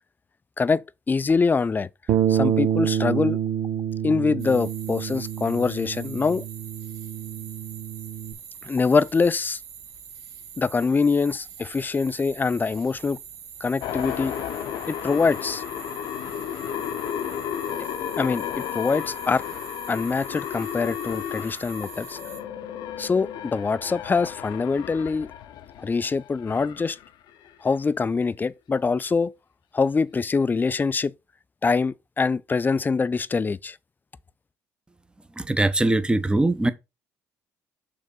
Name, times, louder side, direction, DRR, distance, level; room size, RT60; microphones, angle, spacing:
voice 1, 1.1-1.9 2.3-3.4 4.0-6.4 8.6-9.6 10.6-13.2 13.6-14.4 14.9-15.6 18.2-19.4 19.9-22.2 23.0-25.3 25.8-27.0 27.6-29.3 29.7-31.1 31.6-33.8, left 4 dB, 25° left, 0.5 m, -24 dB
Bass guitar, 2.1-8.3, right 9 dB, 60° right, 1.1 m, -27 dB
sound 1, 4.4-22.4, right 8 dB, 80° right, 1.7 m, -44 dB
sound 2, 13.8-27.7, left 10 dB, 70° left, 0.8 m, -33 dB
voice 2, 35.4-36.7, right 2 dB, 10° right, 0.9 m, -21 dB
6.5 x 3.5 x 5.4 m
hypercardioid pair, 60°, 7 cm